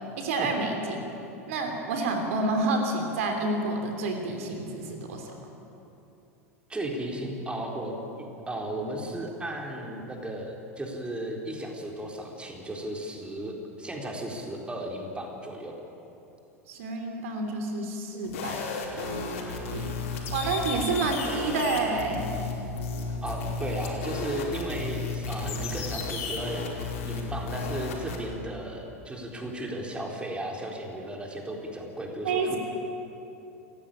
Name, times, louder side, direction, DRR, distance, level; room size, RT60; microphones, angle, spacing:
voice 1, 0.2-1.0 1.5-5.3 16.7-18.6 19.0-19.9 20.3-22.2 32.2-32.6, right 3 dB, 65° right, 4 dB, 3.2 m, -29 dB
voice 2, 6.7-7.9 8.5-15.7 23.2-32.6, right 1 dB, 15° right, 1 dB, 4.0 m, -35 dB
sound 1, 18.2-28.2, left 4 dB, 65° left, 5.0 m, -33 dB
28.5 x 15.0 x 8.9 m, 2.9 s
figure-of-eight pair, 85°, 8 cm